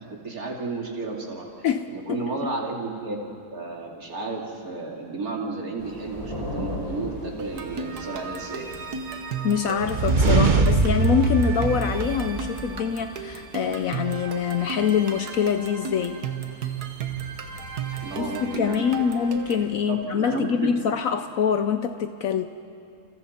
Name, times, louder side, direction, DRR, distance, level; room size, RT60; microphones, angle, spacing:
voice 1, 0.0-1.5 1.9-3.2 3.5-8.6 17.9-18.9 19.9-20.7, right 3 dB, 70° right, 0 dB, 3.0 m, -32 dB
voice 2, 1.6-2.2 9.4-16.2 18.2-22.4, left 7 dB, 65° left, 9 dB, 1.0 m, -25 dB
sound 1, 5.8-19.8, equal, 20° left, 6.8 m, -41 dB
sound 2, 7.4-19.7, right 5 dB, 90° right, 1.8 m, -34 dB
sound 3, 9.8-12.8, right 4 dB, 35° right, 1.0 m, -22 dB
30.0 x 28.5 x 4.3 m, 2.5 s
omnidirectional pair, 1.6 m